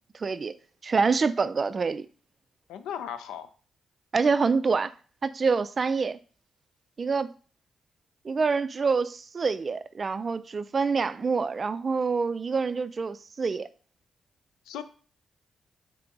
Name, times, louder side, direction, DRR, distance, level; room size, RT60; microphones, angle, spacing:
voice 1, 0.1-0.5 0.8-2.1 4.1-4.9 5.2-6.2 7.0-7.3 8.2-13.7, right 4 dB, 45° right, 0.3 m, -26 dB
voice 2, 2.7-3.5 14.7-14.8, left 9 dB, 80° left, 0.4 m, -36 dB
3.7 x 3.3 x 3.8 m
hypercardioid pair, 45°, 0 cm